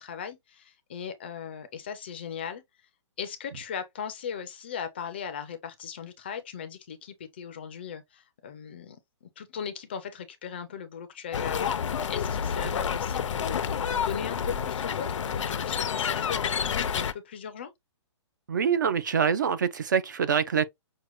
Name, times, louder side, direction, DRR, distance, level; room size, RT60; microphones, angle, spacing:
voice 1, 0.0-2.6 3.2-17.7, left 7 dB, 20° left, 0.4 m, -38 dB
sound 1, 11.3-17.1, left 7 dB, 80° left, 0.5 m, -29 dB
voice 2, 18.5-20.7, right 7 dB, 40° right, 0.4 m, -25 dB
6.2 x 2.1 x 3.0 m
hypercardioid pair, 175°, 16 cm